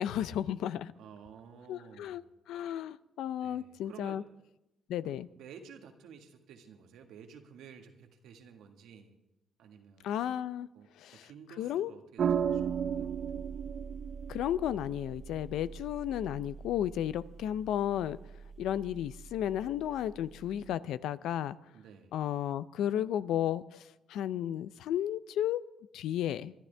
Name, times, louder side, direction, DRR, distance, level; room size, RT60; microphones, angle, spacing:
voice 1, 0.0-0.9 1.7-2.2 2.5-4.2 4.9-5.3 10.0-10.7 11.0-11.3 11.6-11.9 14.3-18.2 18.6-21.6 22.1-25.6 25.9-26.5, left 11 dB, 85° left, 16 dB, 0.5 m, -33 dB
voice 2, 1.0-2.2 3.4-4.2 5.0-9.2 9.6-10.2 10.7-13.3 21.7-22.1, right 7 dB, 85° right, 4 dB, 1.7 m, -53 dB
sound 1, 12.2-20.7, right 8 dB, 60° right, 0.5 m, -37 dB
24.0 x 12.0 x 3.4 m, 0.90 s
cardioid pair, 90°, 0 cm